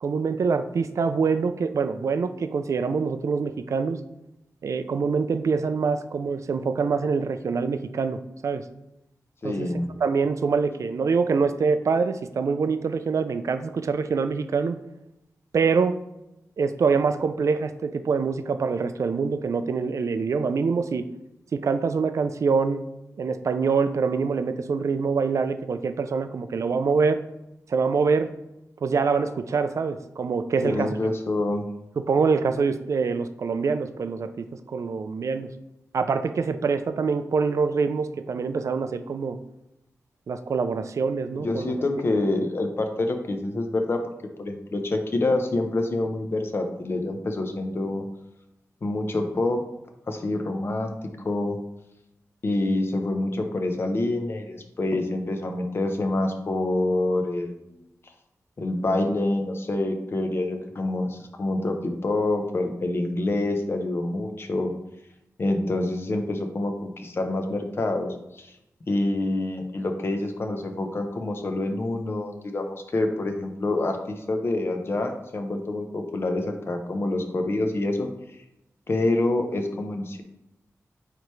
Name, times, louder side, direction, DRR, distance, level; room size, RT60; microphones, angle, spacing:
voice 1, 0.0-4.0 4.6-8.6 9.4-9.7 10.0-14.8 15.5-16.0 16.6-21.1 21.5-22.8 23.2-27.2 27.7-28.3 28.8-30.9 32.0-35.5 35.9-39.4 40.3-41.7, right 5 dB, 60° right, 10 dB, 0.4 m, -25 dB
voice 2, 9.4-9.9 30.6-31.6 41.3-44.0 44.4-48.0 48.8-49.6 50.1-50.9 51.2-51.6 52.4-57.5 58.6-64.7 65.4-68.1 68.3-68.6 68.9-78.1 78.9-80.2, left 2 dB, 45° left, 5 dB, 0.8 m, -26 dB
8.8 x 3.4 x 3.2 m, 0.89 s
wide cardioid pair, 150°, 6 cm